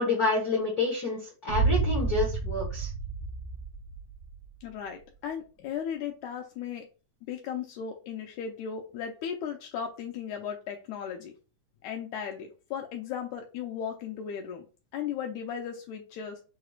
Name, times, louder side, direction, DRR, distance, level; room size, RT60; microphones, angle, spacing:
voice 1, 0.0-2.9, left 3 dB, 55° left, -2 dB, 1.0 m, -28 dB
Boom, 1.5-4.5, right 4 dB, 75° right, 2.1 m, -29 dB
voice 2, 4.6-6.8 7.3-11.3 11.8-14.7 14.9-16.4, left 8 dB, 80° left, 2 dB, 2.0 m, -36 dB
6.6 x 3.0 x 2.4 m, 0.33 s
omnidirectional pair, 3.5 m